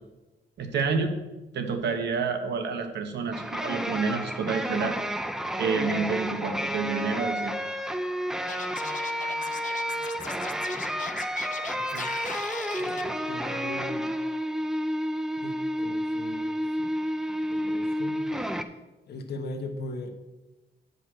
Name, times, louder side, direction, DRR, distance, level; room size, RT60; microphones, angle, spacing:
voice 1, 0.6-1.1 1.5-5.0 5.6-7.5, right 5 dB, 70° right, 6 dB, 1.1 m, -28 dB
sound 1, 3.3-18.6, equal, 5° right, 0.4 m, -31 dB
Scratching (performance technique), 8.5-13.0, left 7 dB, 45° left, 0.6 m, -39 dB
voice 2, 11.7-12.1 12.7-14.1 15.4-16.9 17.5-18.2 19.1-20.1, left 2 dB, 65° left, 5 dB, 1.1 m, -39 dB
9.0 x 5.3 x 6.2 m, 1.1 s
wide cardioid pair, 170°, 18 cm